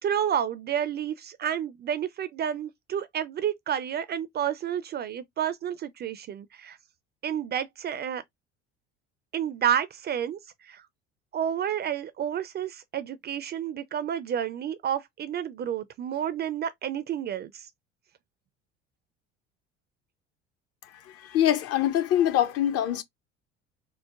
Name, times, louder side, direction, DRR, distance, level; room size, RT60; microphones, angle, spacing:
voice 1, 0.0-6.8 7.2-8.2 9.3-10.4 10.6-10.8 11.3-17.7, right 9 dB, 30° right, 0.4 m, -30 dB
voice 2, 21.2-23.0, left 11 dB, 45° left, 0.6 m, -24 dB
4.5 x 2.0 x 2.3 m
figure-of-eight pair, 60°, 35 cm